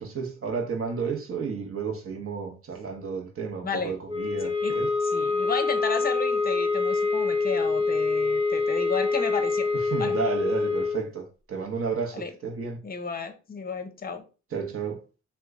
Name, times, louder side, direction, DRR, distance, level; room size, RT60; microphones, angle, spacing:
voice 1, 0.0-4.9 9.7-12.8 14.5-15.0, right 5 dB, 45° right, 1.0 m, -32 dB
sound 1, 4.1-11.1, left 4 dB, 20° right, 1.1 m, -25 dB
voice 2, 5.0-9.7 10.0-10.2 12.1-12.3 12.8-14.2, left 5 dB, 30° left, 0.7 m, -32 dB
2.9 x 2.3 x 3.5 m
cardioid pair, 75°, 31 cm